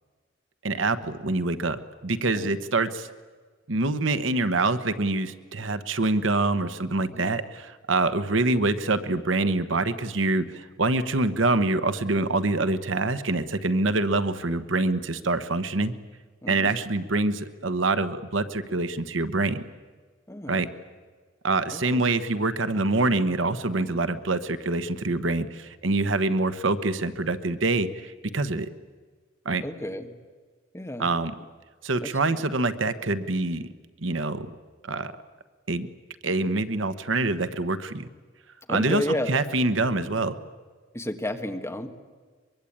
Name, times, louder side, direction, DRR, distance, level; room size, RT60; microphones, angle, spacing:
voice 1, 0.6-3.1 3.7-15.9 16.5-19.6 20.5-20.7 21.4-28.7 29.4-29.6 31.0-31.3 31.8-33.6 34.0-34.5 34.8-35.1 35.7-35.9 36.2-38.1 38.7-40.4, right 2 dB, 65° right, 12 dB, 1.1 m, -25 dB
voice 2, 16.4-16.7 20.3-20.6 21.7-22.0 23.8-24.0 29.6-30.1 30.7-31.1 32.0-32.1 38.7-39.4 40.9-41.9, left 1 dB, 15° left, 6 dB, 1.6 m, -32 dB
24.0 x 22.5 x 8.7 m, 1.5 s
head